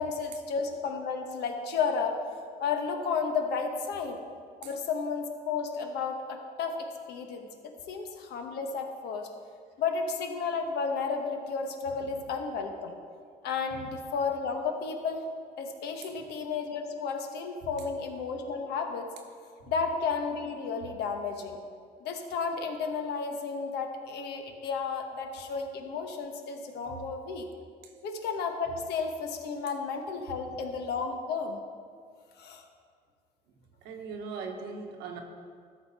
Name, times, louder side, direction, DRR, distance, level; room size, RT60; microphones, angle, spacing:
voice 1, 0.0-2.2 2.6-4.2 4.6-9.3 9.8-13.0 13.4-15.3 15.6-19.1 19.7-21.6 22.0-27.5 28.0-31.6 32.4-32.6, left 5 dB, 75° left, 4 dB, 1.2 m, -32 dB
voice 2, 33.8-35.2, right 5 dB, 90° right, 3 dB, 1.3 m, -40 dB
13.0 x 6.4 x 4.2 m, 2.1 s
cardioid pair, 110°, 17 cm